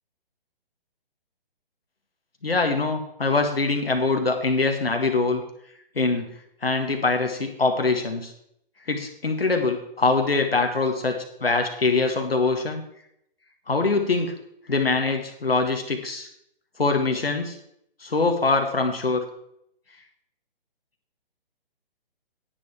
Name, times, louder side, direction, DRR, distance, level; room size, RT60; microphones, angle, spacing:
voice 1, 2.4-5.4 5.9-6.3 6.6-8.3 8.9-12.8 13.7-14.3 14.7-16.3 16.8-17.6 18.0-19.2, left 3 dB, 80° left, 4 dB, 1.7 m, -23 dB
10.0 x 9.7 x 4.3 m, 0.74 s
figure-of-eight pair, 135°, 29 cm